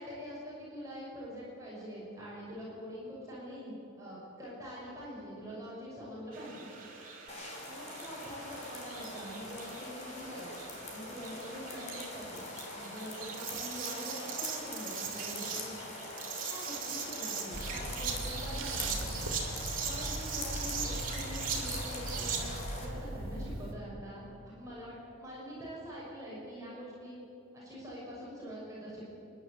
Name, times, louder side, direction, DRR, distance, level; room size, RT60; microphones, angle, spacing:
voice 1, 0.0-6.7 7.6-10.6 10.9-12.5 12.7-15.9 16.5-19.2 19.8-27.2 27.5-29.0, equal, 15° right, -7 dB, 5.8 m, -44 dB
sound 1, 6.3-22.6, right 6 dB, 40° right, 3.0 m, -41 dB
sound 2, 7.3-22.9, left 2 dB, 35° left, 3.1 m, -44 dB
sound 3, 17.5-23.7, right 1 dB, 75° right, 2.6 m, -40 dB
29.0 x 11.5 x 8.3 m, 2.8 s
head